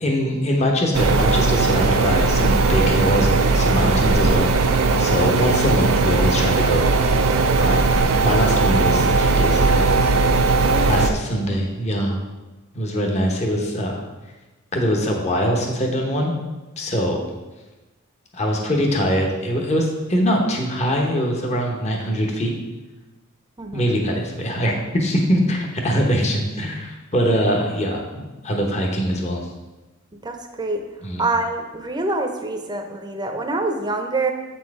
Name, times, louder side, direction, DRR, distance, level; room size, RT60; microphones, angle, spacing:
voice 1, 0.0-4.5 5.0-6.9 7.5-9.9 10.8-12.2 12.7-14.0 14.7-16.3 16.8-17.2 18.3-22.5 23.7-29.4 31.0-31.3, equal, 30° left, 1 dB, 1.0 m, -22 dB
sound 1, 0.9-11.1, right 3 dB, 90° right, 0.6 m, -18 dB
voice 2, 10.7-11.0 11.5-11.6 23.6-23.9 30.2-30.8 31.2-34.3, right 2 dB, 20° right, 4 dB, 0.7 m, -26 dB
7.8 x 4.5 x 4.8 m, 1.1 s
head